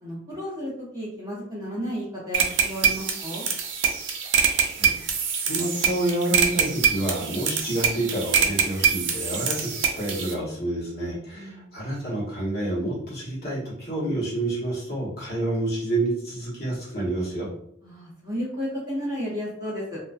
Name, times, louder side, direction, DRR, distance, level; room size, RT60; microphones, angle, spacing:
voice 1, 0.0-3.4 11.3-11.7 17.8-20.0, equal, 20° right, -7 dB, 0.9 m, -33 dB
sound 1, 2.3-10.3, right 7 dB, 75° right, 0.4 m, -24 dB
voice 2, 5.4-17.5, right 1 dB, 50° left, -6 dB, 1.0 m, -28 dB
2.4 x 2.1 x 2.4 m, 0.71 s
head